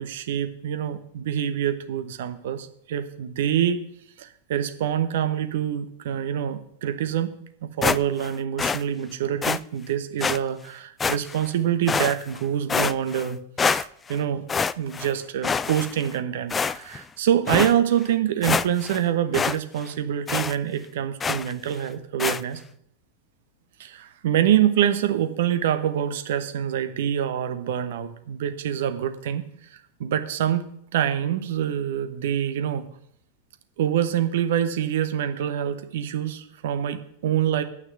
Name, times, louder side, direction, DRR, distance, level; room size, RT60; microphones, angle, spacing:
voice 1, 0.0-3.8 4.2-7.3 7.6-13.4 13.7-14.4 14.8-22.6 23.8-29.4 30.0-30.6 30.9-32.9 33.8-37.6, right 10 dB, 55° right, 9 dB, 1.1 m, -25 dB
sound 1, 7.8-8.3 8.6-8.8 9.4-9.6 10.2-10.4 11.0-11.5 11.9-12.4 12.7-13.3 13.6-14.2 14.5-15.1 15.4-16.1 16.5-17.0 17.5-17.7 18.1-18.2 18.4-19.0 19.3-19.6 19.8-19.9 20.3-20.5 21.2-21.5 22.2-22.4, left 5 dB, 15° left, 0.3 m, -25 dB
9.3 x 6.1 x 7.9 m, 0.70 s
figure-of-eight pair, 90°, 0 cm